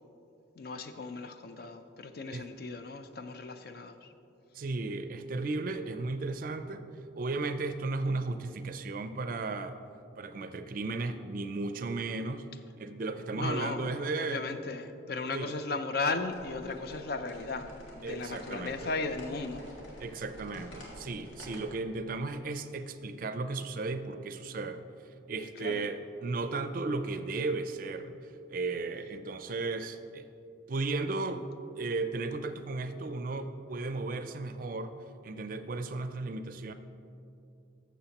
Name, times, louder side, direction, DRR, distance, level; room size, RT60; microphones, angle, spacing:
voice 1, 0.6-4.1 13.3-13.9 14.2-17.7 18.0-19.6 25.6-25.8, left 3 dB, 50° left, 8 dB, 0.5 m, -36 dB
voice 2, 4.5-6.9 7.2-9.8 10.2-12.5 12.8-14.4 15.3-15.6 18.0-18.9 20.0-24.8 25.3-30.3 30.7-31.4 31.8-35.0 35.2-36.7, right 3 dB, 45° right, 10 dB, 0.4 m, -35 dB
sound 1, 16.2-21.7, equal, 90° left, 1.9 m, -49 dB
12.5 x 7.2 x 2.9 m, 2.7 s
head